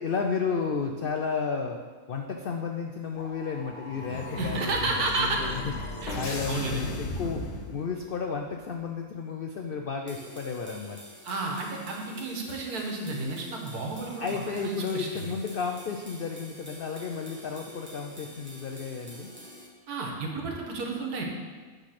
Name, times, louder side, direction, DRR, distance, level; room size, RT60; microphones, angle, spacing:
voice 1, 0.0-1.8 2.1-5.7 6.1-11.0 14.2-19.3, left 5 dB, 75° left, 3 dB, 0.5 m, -32 dB
sound 1, 3.1-8.2, left 2 dB, 50° left, 1.2 m, -36 dB
voice 2, 4.4-5.4 6.0-6.8 11.2-15.3 19.9-21.2, right 3 dB, 80° right, 1 dB, 1.6 m, -32 dB
sound 2, 10.1-19.7, equal, 10° right, 0.8 m, -48 dB
8.9 x 3.9 x 5.8 m, 1.4 s
omnidirectional pair, 1.6 m